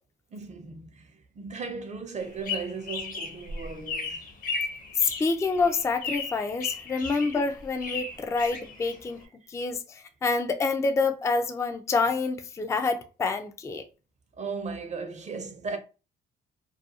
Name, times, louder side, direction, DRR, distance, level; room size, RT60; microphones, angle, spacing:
voice 1, 0.3-4.2 9.4-9.5 14.4-15.8, right 4 dB, 35° right, 0.5 m, -36 dB
sound 1, 2.2-9.2, left 4 dB, 45° left, 0.7 m, -36 dB
voice 2, 5.0-9.2 9.5-13.9, left 4 dB, 15° left, 0.3 m, -27 dB
2.4 x 2.2 x 2.7 m
cardioid pair, 90°, 20 cm